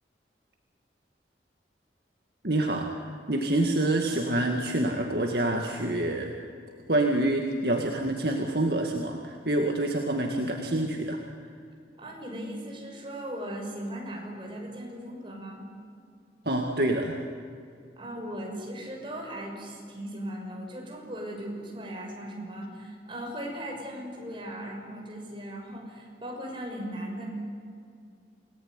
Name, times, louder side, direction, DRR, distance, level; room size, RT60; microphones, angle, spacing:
voice 1, 2.4-2.9 3.3-6.3 6.9-11.2 16.5-17.2, right 1 dB, 60° right, 2 dB, 2.1 m, -27 dB
voice 2, 12.0-15.6 18.0-27.3, equal, 30° right, 0 dB, 6.3 m, -38 dB
28.0 x 19.0 x 9.7 m, 2.3 s
head